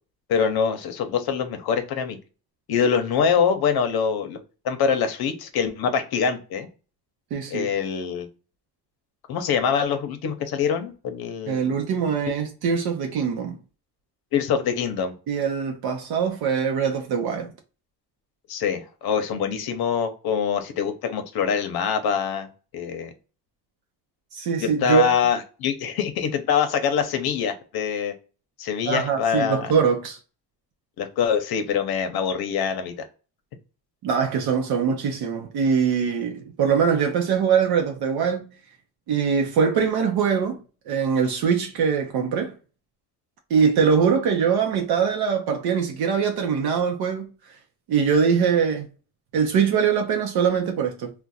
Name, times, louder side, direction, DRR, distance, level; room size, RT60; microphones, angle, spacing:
voice 1, 0.3-2.2 2.7-4.4 4.6-6.7 7.5-8.3 9.3-11.7 14.3-15.1 18.5-22.5 22.7-23.1 24.6-28.1 28.6-29.7 31.0-33.1, left 7 dB, 70° left, 0.7 m, -24 dB
voice 2, 7.3-7.7 11.5-13.6 15.3-17.5 24.3-25.1 28.8-30.2 34.0-38.5 39.1-42.5 43.5-47.6 47.9-48.9 49.3-51.1, right 6 dB, 70° right, 0.6 m, -22 dB
2.4 x 2.2 x 3.9 m
cardioid pair, 155°, 39 cm